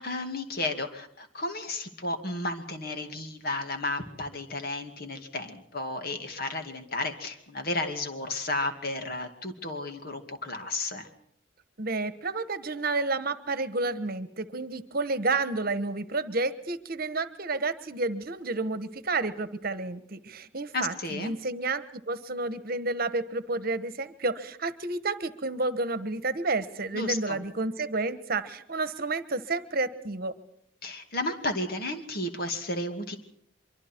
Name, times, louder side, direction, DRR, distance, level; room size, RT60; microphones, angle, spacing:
voice 1, 0.0-11.1 20.7-21.3 26.9-27.4 30.8-33.2, left 2 dB, 50° left, 6 dB, 2.5 m, -33 dB
voice 2, 11.8-30.3, right 3 dB, 50° right, 13 dB, 1.3 m, -30 dB
24.5 x 24.0 x 4.6 m, 0.69 s
head